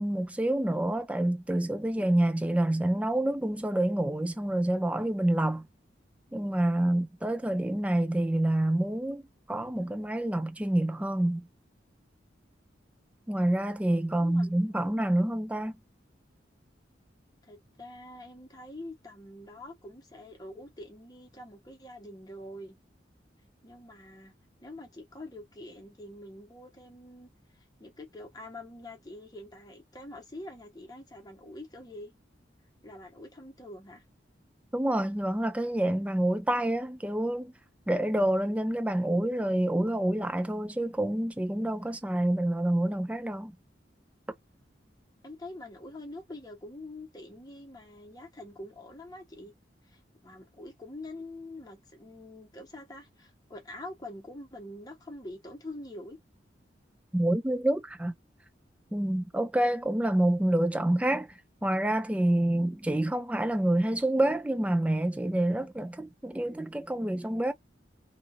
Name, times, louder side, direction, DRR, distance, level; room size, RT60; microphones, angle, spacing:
voice 1, 0.0-5.7 6.3-9.2 9.5-11.5 13.3-15.7 34.7-37.5 37.9-43.5 57.1-58.1 58.9-61.3 61.6-67.5, right 1 dB, 5° right, 0.3 m, -27 dB
voice 2, 14.1-14.9 17.4-22.8 23.6-32.1 32.8-34.0 45.2-49.5 49.8-56.2, left 1 dB, 20° left, 1.0 m, -45 dB
2.9 x 2.5 x 2.5 m
head